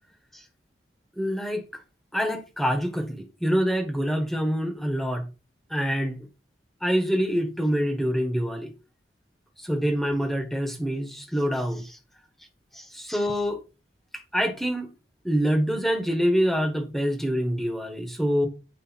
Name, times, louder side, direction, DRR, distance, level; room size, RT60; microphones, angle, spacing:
voice 1, 1.2-1.6 2.1-5.3 5.7-6.3 6.8-8.7 9.6-12.0 12.7-13.6 14.3-14.9 15.2-18.5, equal, ahead, 1.4 m, -26 dB
9.2 x 4.8 x 4.5 m
head